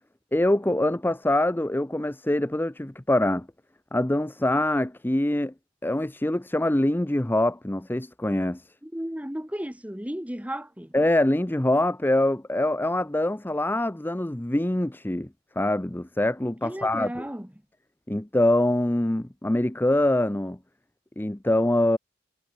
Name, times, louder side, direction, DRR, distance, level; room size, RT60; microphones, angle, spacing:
voice 1, 0.3-3.5 3.9-5.5 5.8-8.6 10.9-15.3 15.6-17.2 18.1-20.6 21.2-22.0, left 1 dB, 10° left, 0.6 m, -24 dB
voice 2, 8.8-10.9 16.6-17.5, equal, 5° right, 1.3 m, -34 dB
head